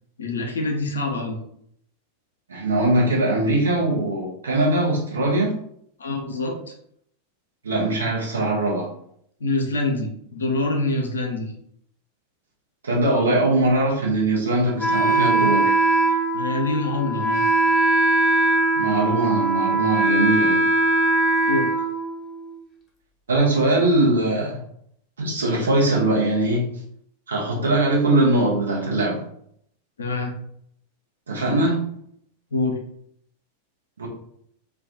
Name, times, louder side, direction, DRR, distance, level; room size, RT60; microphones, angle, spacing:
voice 1, 0.2-1.4 6.0-6.7 9.4-11.5 16.3-17.4 21.5-21.7 30.0-30.3 32.5-32.8, left 2 dB, 70° left, 2 dB, 0.5 m, -25 dB
voice 2, 2.5-5.6 7.6-8.9 12.8-15.7 18.7-20.7 23.3-24.6 25.2-26.7 27.3-29.2 31.3-31.9 34.0-34.1, right 2 dB, 70° right, -2 dB, 0.7 m, -21 dB
Wind instrument woodwind instrument, 14.8-22.5, right 2 dB, 20° left, 0.6 m, -21 dB
2.2 x 2.2 x 2.6 m, 0.68 s
figure-of-eight pair, 90°, 0 cm